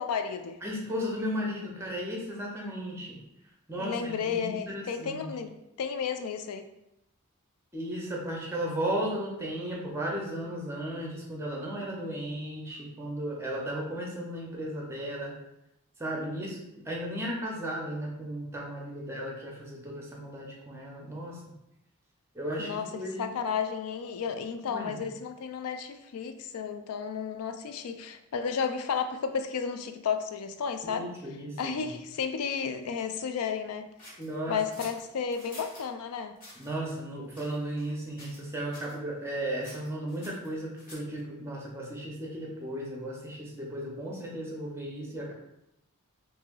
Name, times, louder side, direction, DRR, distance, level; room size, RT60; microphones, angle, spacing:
voice 1, 0.0-0.6 3.8-6.7 22.6-31.1 31.6-33.9 34.5-36.4, left 6 dB, 75° left, 8 dB, 0.4 m, -33 dB
voice 2, 0.6-3.2 3.7-5.2 7.7-15.3 16.0-21.4 22.3-23.3 24.7-25.0 30.8-31.9 34.2-34.6 36.6-45.3, right 1 dB, 10° right, -2 dB, 0.7 m, -35 dB
sound 1, 34.0-35.9 36.4-36.7 37.3-37.9 38.2-38.5 38.7-39.0 39.6-41.2, left 1 dB, 40° left, 1.1 m, -49 dB
3.0 x 2.6 x 3.7 m, 0.86 s
head